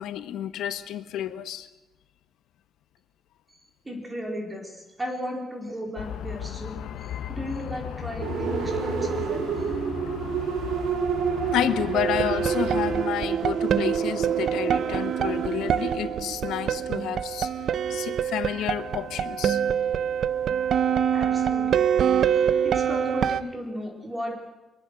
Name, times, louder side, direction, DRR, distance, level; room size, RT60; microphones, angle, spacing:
voice 1, 0.0-1.7 11.5-17.5 17.9-19.6, left 11 dB, 90° left, 1.3 m, -30 dB
voice 2, 3.8-9.7 21.1-21.9 22.6-24.5, equal, 15° right, 4.2 m, -35 dB
sound 1, 6.0-13.1, left 9 dB, 70° left, 1.1 m, -36 dB
sound 2, 8.2-16.9, right 7 dB, 65° right, 2.0 m, -29 dB
sound 3, 11.9-23.4, right 8 dB, 50° right, 0.8 m, -25 dB
24.0 x 22.5 x 6.4 m
cardioid pair, 175°, 0 cm